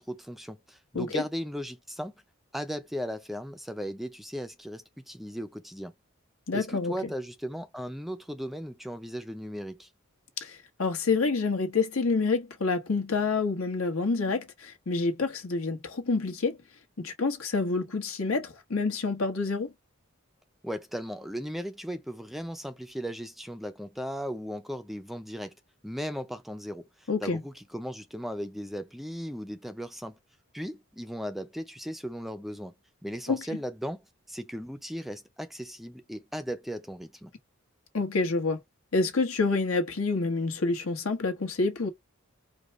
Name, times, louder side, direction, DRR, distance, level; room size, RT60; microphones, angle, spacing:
voice 1, 0.0-2.1 2.5-5.9 6.5-9.9 20.6-25.5 25.8-30.2 30.5-32.7 33.0-34.0 34.3-37.3, equal, ahead, 0.4 m, -37 dB
voice 2, 6.5-6.9 10.4-16.6 17.0-19.7 27.1-27.4 33.3-33.4 37.9-38.6 38.9-41.9, left 3 dB, 80° left, 1.4 m, -28 dB
4.9 x 2.3 x 4.1 m
head